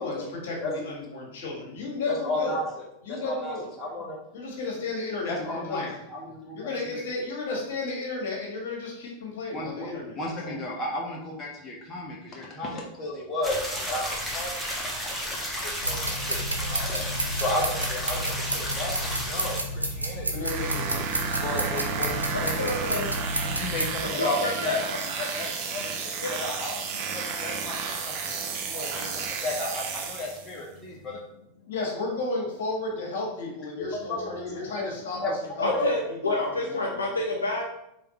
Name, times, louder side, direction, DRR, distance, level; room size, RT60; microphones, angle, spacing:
voice 1, 0.0-2.6 3.0-3.7 4.3-5.9 6.5-10.5 20.3-21.4 31.7-35.2 35.6-37.1, left 3 dB, 55° left, -1 dB, 1.7 m, -33 dB
voice 2, 2.1-2.6 3.1-4.2 5.2-6.6 6.9-7.0 9.5-9.9 10.2-13.6 13.9-14.7 15.6-17.1 17.4-20.3 21.4-22.7 23.4-24.8 25.2-28.4 28.6-31.2 33.8-34.3 34.8-34.9 35.2-35.3 35.7-35.9, left 1 dB, 25° left, -2 dB, 0.8 m, -33 dB
sound 1, 13.4-19.6, equal, ahead, 1.1 m, -33 dB
sound 2, 15.8-23.9, right 1 dB, 85° right, 0.5 m, -31 dB
sound 3, 20.4-30.6, right 5 dB, 45° right, 0.6 m, -32 dB
voice 3, 22.3-23.1 24.0-24.8 26.2-26.3 35.6-37.6, left 2 dB, 75° left, 0 dB, 0.5 m, -28 dB
5.0 x 3.5 x 2.9 m, 0.82 s
figure-of-eight pair, 90°, 0 cm